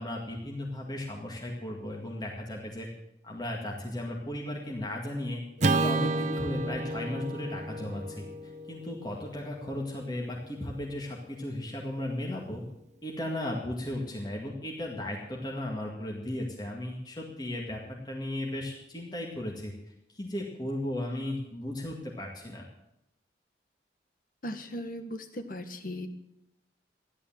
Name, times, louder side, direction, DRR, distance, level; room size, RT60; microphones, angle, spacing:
voice 1, 0.0-2.9 3.2-5.4 5.7-8.3 8.7-12.6 13.0-17.8 18.0-19.7 20.1-22.7, left 1 dB, 25° left, -1 dB, 2.0 m, -35 dB
Acoustic guitar / Strum, 5.6-10.0, right 2 dB, 40° right, 0.8 m, -31 dB
voice 2, 24.4-26.1, left 1 dB, 50° left, 8 dB, 1.6 m, -38 dB
14.5 x 11.5 x 7.4 m, 0.84 s
head